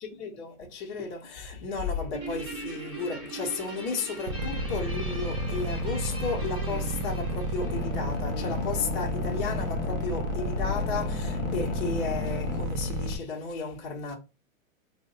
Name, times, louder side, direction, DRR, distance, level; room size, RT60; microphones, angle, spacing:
voice 1, 0.0-14.2, left 4 dB, 35° left, 0.9 m, -33 dB
Guitar, 2.1-8.8, right 2 dB, 10° right, 0.8 m, -41 dB
sound 1, 4.3-13.2, right 2 dB, 35° right, 0.4 m, -31 dB
sound 2, 7.6-12.7, left 9 dB, 60° left, 0.6 m, -38 dB
3.2 x 2.1 x 3.7 m
hypercardioid pair, 140°, 42 cm